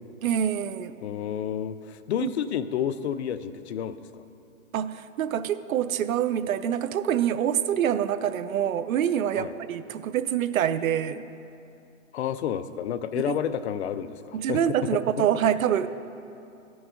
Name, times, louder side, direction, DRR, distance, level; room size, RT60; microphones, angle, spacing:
voice 1, 0.2-1.0 2.2-2.3 4.7-11.3 13.2-13.4 14.3-15.9, right 9 dB, 80° right, 13 dB, 0.5 m, -26 dB
voice 2, 1.0-4.2 9.4-9.5 12.1-14.6 14.9-15.0, left 9 dB, 55° left, 13 dB, 0.4 m, -30 dB
13.0 x 6.1 x 3.7 m, 2.7 s
hypercardioid pair, 150°, 41 cm